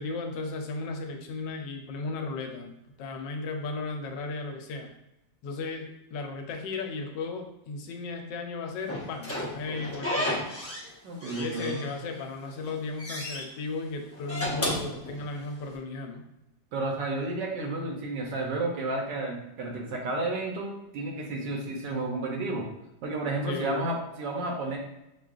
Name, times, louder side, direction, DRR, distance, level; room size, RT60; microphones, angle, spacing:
voice 1, 0.0-4.9 5.4-10.4 11.3-16.2 23.5-23.9, left 3 dB, 85° left, 3 dB, 1.3 m, -35 dB
Slam / Squeak, 8.9-10.9 11.2-12.2 12.6-13.4 14.1-15.7, left 1 dB, 20° left, 0.4 m, -33 dB
voice 2, 11.0-11.8 16.7-22.7 23.0-24.8, right 2 dB, 80° right, 0 dB, 1.4 m, -31 dB
6.3 x 2.3 x 2.4 m, 0.88 s
omnidirectional pair, 1.9 m